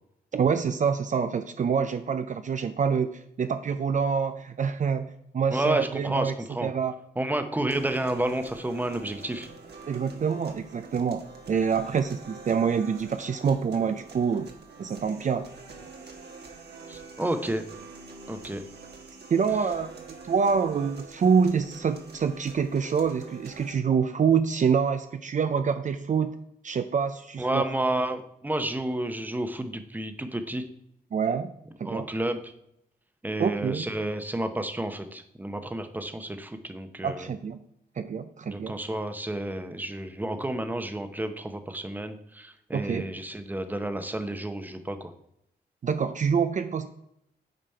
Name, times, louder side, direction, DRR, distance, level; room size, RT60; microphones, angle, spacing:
voice 1, 0.3-6.3 6.6-6.9 9.9-14.5 14.8-15.5 19.3-26.3 26.6-27.6 31.1-31.5 31.8-32.1 33.4-33.8 37.0-37.6 38.0-38.7 42.7-43.0 45.8-46.9, right 6 dB, 45° right, 9 dB, 0.5 m, -26 dB
voice 2, 5.5-6.7 7.2-9.5 16.9-17.6 18.3-18.6 27.4-30.6 31.8-32.4 33.2-37.3 38.5-45.1, right 1 dB, 10° right, 8 dB, 0.8 m, -31 dB
sound 1, 7.7-23.7, right 4 dB, 70° right, 1.4 m, -46 dB
9.0 x 5.0 x 4.4 m, 0.76 s
wide cardioid pair, 100°, 17 cm